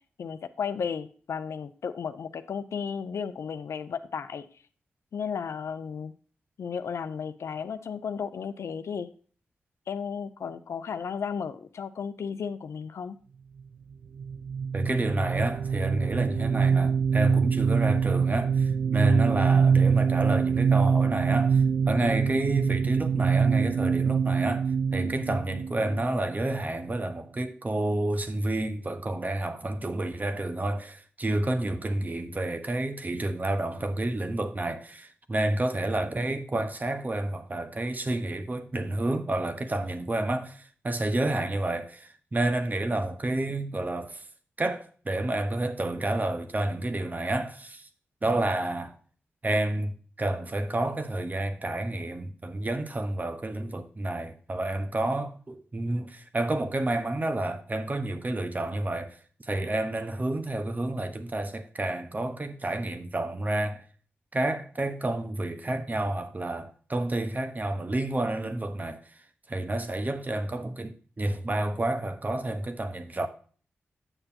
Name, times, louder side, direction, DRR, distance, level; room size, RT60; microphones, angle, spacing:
voice 1, 0.2-4.5 5.1-6.1 6.6-9.1 9.9-13.2, left 6 dB, 75° left, 0.6 m, -34 dB
sound 1, 14.2-26.6, right 6 dB, 90° right, 0.4 m, -24 dB
voice 2, 14.7-44.2 44.6-47.9 48.2-49.0 49.4-63.8 64.3-69.0 69.5-73.3, right 1 dB, 35° right, 1.1 m, -29 dB
8.9 x 6.7 x 2.8 m
cardioid pair, 40°, 5 cm